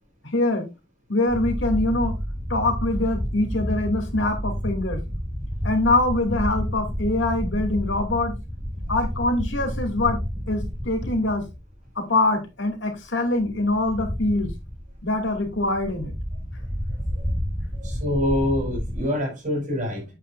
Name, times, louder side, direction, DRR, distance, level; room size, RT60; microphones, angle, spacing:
voice 1, 0.2-0.6 1.1-2.1 2.5-5.0 5.6-8.3 8.9-10.2 10.5-11.5 12.0-14.5 15.0-16.1, left 2 dB, 85° left, 4 dB, 2.5 m, -24 dB
sound 1, 1.3-11.9 12.2-12.3 13.4-19.0, equal, 5° right, 4.8 m, -30 dB
voice 2, 17.8-20.1, left 1 dB, 40° right, 0 dB, 5.8 m, -25 dB
8.9 x 8.7 x 2.4 m, 0.26 s
head